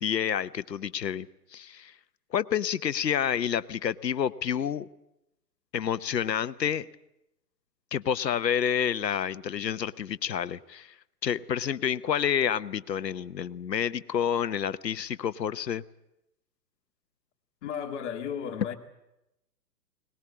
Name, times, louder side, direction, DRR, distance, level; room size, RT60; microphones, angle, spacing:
voice 1, 0.0-1.3 1.5-1.9 2.3-4.9 5.7-6.9 7.9-10.9 11.2-15.8, left 8 dB, 80° left, 1.0 m, -29 dB
voice 2, 17.6-18.7, left 8 dB, 45° left, 2.0 m, -34 dB
21.5 x 19.5 x 8.5 m
hypercardioid pair, 130°, 49 cm